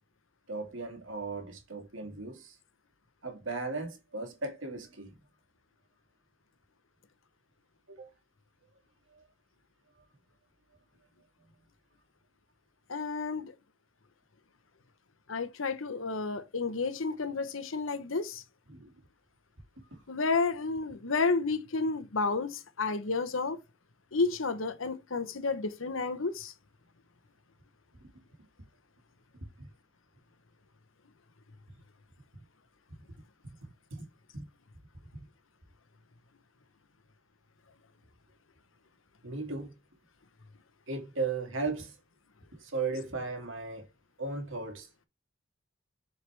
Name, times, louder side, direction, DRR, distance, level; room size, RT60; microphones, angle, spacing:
voice 1, 0.5-2.5 3.2-5.2 7.9-8.1 9.1-9.3 18.7-18.9 19.9-20.0 29.6-29.7 34.3-34.4 39.2-39.8 40.9-42.0 42.6-43.9 44.2-44.9, right 3 dB, 75° right, 2.3 m, -36 dB
voice 2, 12.9-13.5 15.3-18.4 20.1-23.6 24.1-26.5, left 4 dB, 85° left, 1.0 m, -31 dB
8.1 x 4.8 x 3.4 m
head